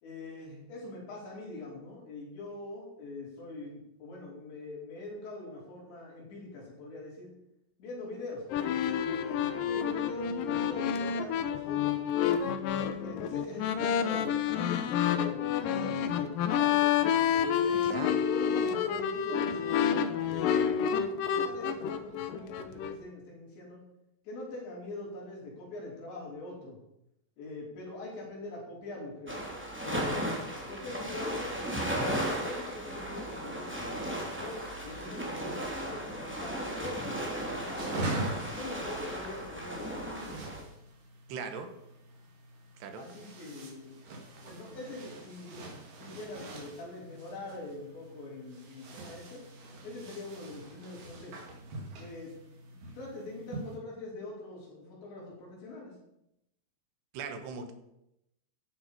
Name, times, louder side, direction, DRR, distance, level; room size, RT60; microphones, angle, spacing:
voice 1, 0.0-7.3 7.8-8.5 8.7-12.0 12.6-16.8 17.3-17.8 18.3-20.9 21.3-23.8 24.3-26.8 27.4-29.4 29.7-34.0 34.4-37.8 38.2-40.4 43.0-44.0 44.4-45.7 46.0-49.4 49.8-51.4 52.0-52.3 52.7-55.9, left 2 dB, 90° left, -3 dB, 7.1 m, -43 dB
sound 1, 8.5-23.0, left 8 dB, 75° left, 2.1 m, -29 dB
voice 2, 17.8-18.2 41.3-41.7 42.8-43.1 57.1-57.7, right 5 dB, 75° right, 7 dB, 3.5 m, -39 dB
sound 2, 29.3-40.6, equal, 5° right, 2.1 m, -35 dB
sound 3, 37.3-53.8, right 2 dB, 55° right, 4.0 m, -43 dB
14.0 x 11.0 x 5.3 m, 0.84 s
omnidirectional pair, 5.0 m